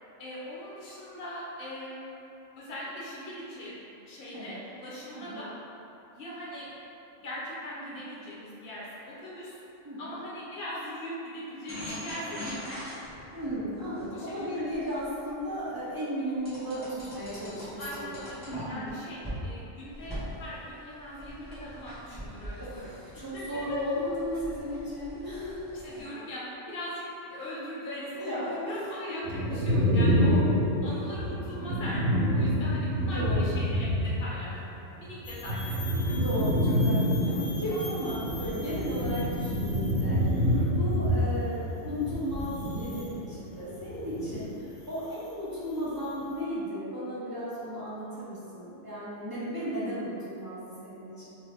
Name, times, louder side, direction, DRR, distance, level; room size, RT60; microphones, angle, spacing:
voice 1, 0.2-2.1 2.6-3.7 4.1-5.5 6.1-6.7 7.2-9.6 10.0-12.8 14.1-14.6 17.8-22.9 23.3-23.4 23.7-23.8 25.8-27.0 27.3-30.4 30.8-34.6 35.0-36.2 40.4-40.7 49.5-49.7, left 1 dB, 55° left, -7 dB, 0.9 m, -40 dB
voice 2, 5.1-5.5 9.8-10.2 13.3-18.2 18.5-18.9 22.6-25.6 28.1-28.8 29.1-29.2 32.9-33.7 36.1-40.4 40.7-51.3, equal, 40° right, -10 dB, 0.3 m, -35 dB
sound 1, 11.7-15.6 16.4-18.9 19.2-19.4 19.9-26.0, equal, 10° left, 1.1 m, -42 dB
sound 2, 29.2-34.6 34.8-43.4 43.7-44.4, equal, 85° right, 1.0 m, -27 dB
sound 3, 35.2-46.4, left 2 dB, 80° left, 1.0 m, -46 dB
2.9 x 2.6 x 3.2 m, 2.8 s
omnidirectional pair, 1.3 m